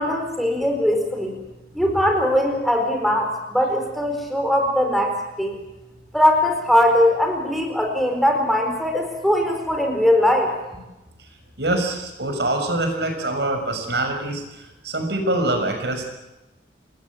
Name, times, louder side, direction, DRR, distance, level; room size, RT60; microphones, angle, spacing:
voice 1, 0.0-1.4 1.7-5.6 6.1-10.5, left 1 dB, ahead, 3 dB, 4.4 m, -20 dB
voice 2, 11.6-16.0, right 2 dB, 70° right, 5 dB, 6.3 m, -24 dB
29.0 x 21.0 x 8.6 m, 1.0 s
head